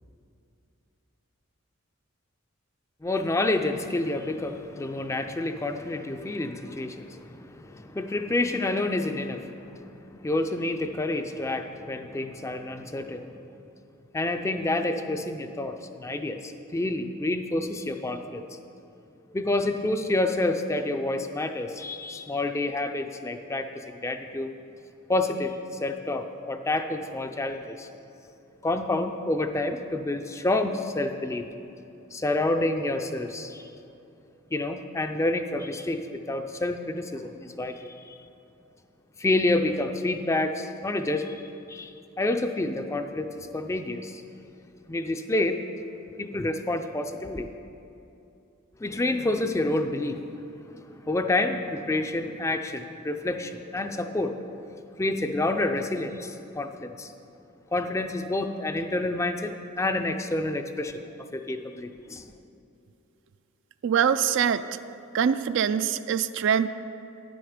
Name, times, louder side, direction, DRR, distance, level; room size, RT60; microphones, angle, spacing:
voice 1, 3.0-13.5 14.1-18.4 19.3-24.5 25.1-27.9 28.6-31.5 32.1-33.7 34.5-38.1 39.2-41.4 41.7-41.9 42.2-44.2 44.9-45.6 46.2-47.5 48.8-54.3 55.0-57.1 57.7-62.3, left 2 dB, 15° left, 7 dB, 0.4 m, -28 dB
voice 2, 63.8-64.6 65.1-66.7, right 8 dB, 60° right, 12 dB, 0.3 m, -23 dB
10.0 x 7.8 x 5.0 m, 2.7 s
head